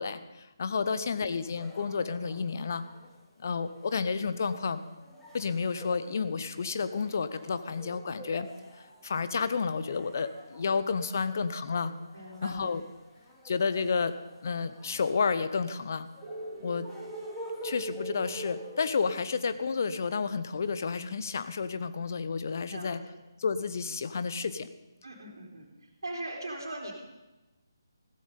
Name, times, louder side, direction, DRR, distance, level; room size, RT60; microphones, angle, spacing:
voice 1, 0.0-2.8 3.4-4.8 5.3-8.5 8.8-11.9 12.4-12.8 13.4-14.1 14.4-16.1 16.6-16.9 17.6-23.0 23.4-24.7, left 5 dB, 45° left, 12 dB, 1.0 m, -31 dB
sound 1, 1.3-19.0, left 1 dB, 10° left, 3.2 m, -49 dB
voice 2, 12.1-12.6 22.7-22.9 25.0-25.7 26.0-26.9, right 1 dB, 60° right, -3 dB, 3.3 m, -39 dB
sound 2, 16.2-19.4, right 2 dB, 20° right, 3.0 m, -42 dB
15.5 x 14.0 x 5.4 m, 1.1 s
figure-of-eight pair, 145°, 2 cm